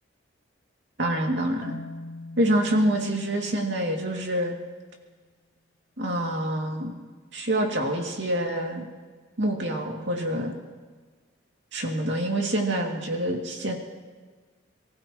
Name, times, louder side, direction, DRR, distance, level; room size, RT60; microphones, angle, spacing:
voice 1, 1.0-1.8 2.4-4.5 6.0-6.9 7.3-8.9 9.4-10.5 11.7-13.8, right 1 dB, 65° right, 0 dB, 2.5 m, -26 dB
Marimba xylophone, 1.6-4.6, left 2 dB, 80° left, 1.1 m, -43 dB
28.5 x 15.0 x 3.1 m, 1.4 s
head